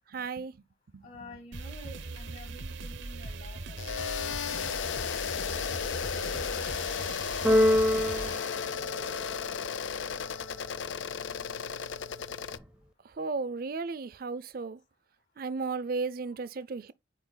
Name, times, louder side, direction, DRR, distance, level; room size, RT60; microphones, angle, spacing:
voice 1, 0.1-0.5 0.9-1.0 13.2-14.8 15.4-16.9, right 4 dB, 50° right, 0.5 m, -34 dB
voice 2, 1.0-4.9 5.2-7.3 7.6-9.2 9.5-9.7, left 1 dB, 45° left, 1.7 m, -51 dB
sound 1, 1.5-8.4, right 2 dB, 85° right, 0.9 m, -40 dB
sound 2, 3.8-12.6, left 7 dB, 80° left, 0.4 m, -34 dB
Keyboard (musical), 7.4-9.6, left 1 dB, 5° right, 0.6 m, -26 dB
10.5 x 4.5 x 2.2 m
head